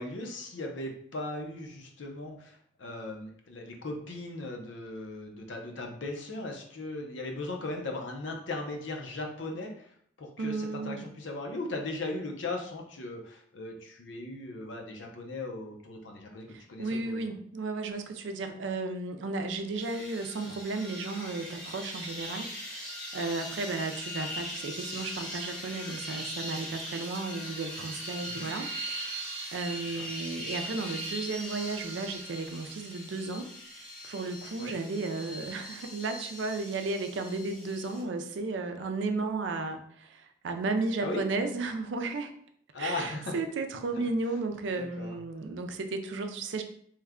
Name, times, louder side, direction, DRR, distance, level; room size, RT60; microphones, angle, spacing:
voice 1, 0.0-17.3 28.2-28.5 29.9-30.1 34.6-34.7 41.0-41.2 42.7-43.4 44.7-45.2, left 2 dB, 80° left, 2 dB, 0.6 m, -38 dB
voice 2, 10.4-11.0 16.5-33.5 34.0-42.3 42.8-46.6, right 3 dB, 75° right, 6 dB, 0.4 m, -34 dB
sound 1, 19.8-38.0, equal, 5° left, 0.9 m, -40 dB
3.1 x 2.2 x 3.6 m, 0.63 s
head